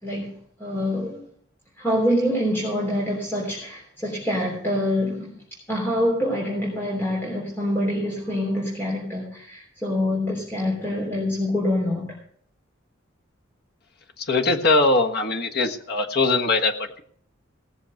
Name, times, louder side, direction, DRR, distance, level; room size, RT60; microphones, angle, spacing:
voice 1, 0.6-1.2 1.8-5.4 5.7-12.2, left 1 dB, 10° left, -5 dB, 3.5 m, -25 dB
voice 2, 14.3-17.0, left 3 dB, 55° left, 3 dB, 1.4 m, -21 dB
17.5 x 7.2 x 6.4 m, 0.62 s
head